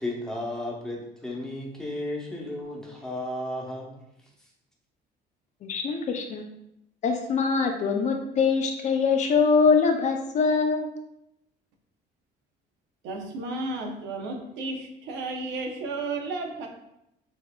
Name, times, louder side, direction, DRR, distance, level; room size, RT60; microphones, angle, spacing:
voice 1, 0.0-4.0, left 1 dB, 5° left, -3 dB, 0.8 m, -33 dB
voice 2, 5.6-6.4 7.0-10.9, left 5 dB, 40° left, 4 dB, 0.5 m, -23 dB
voice 3, 13.0-16.7, right 3 dB, 75° right, 3 dB, 0.8 m, -33 dB
6.8 x 2.6 x 2.3 m, 0.83 s
cardioid pair, 150°, 19 cm